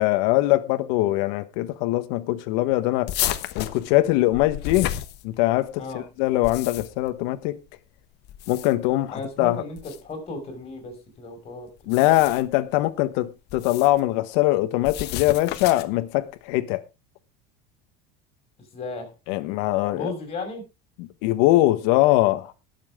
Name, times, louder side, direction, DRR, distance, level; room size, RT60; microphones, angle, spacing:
voice 1, 0.0-3.1 3.5-4.9 5.2-7.6 8.5-9.6 11.9-16.8 19.3-20.1 21.0-22.5, left 17 dB, 75° left, 1.3 m, -22 dB
sound 1, 3.1-5.7 6.3-7.1 8.2-8.9 9.8-10.0 11.8-12.6 13.5-14.0 14.8-16.0, left 13 dB, 55° left, 1.2 m, -32 dB
voice 2, 9.1-11.9 18.7-19.1 19.9-20.6, left 3 dB, 30° left, 5.8 m, -35 dB
20.0 x 7.4 x 3.6 m
cardioid pair, 135°, 21 cm